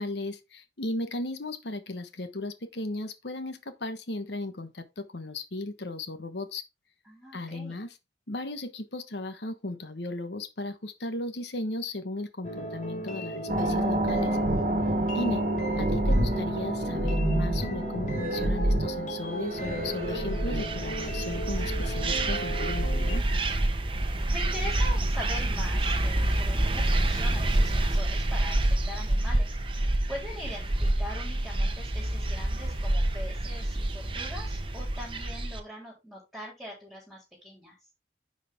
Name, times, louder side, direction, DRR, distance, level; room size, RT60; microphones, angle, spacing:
voice 1, 0.0-6.6 7.3-7.9 8.3-14.4 15.1-15.4 15.8-23.2, left 2 dB, 75° left, 1.2 m, -35 dB
voice 2, 7.0-7.8 24.3-29.6 30.1-37.7, left 1 dB, 5° right, 3.9 m, -42 dB
sound 1, 12.4-23.2, right 1 dB, 45° left, 1.6 m, -37 dB
sound 2, 13.5-22.3, right 1 dB, 45° right, 1.5 m, -28 dB
sound 3, 19.9-35.6, right 1 dB, 30° right, 1.0 m, -27 dB
9.9 x 5.1 x 3.7 m
head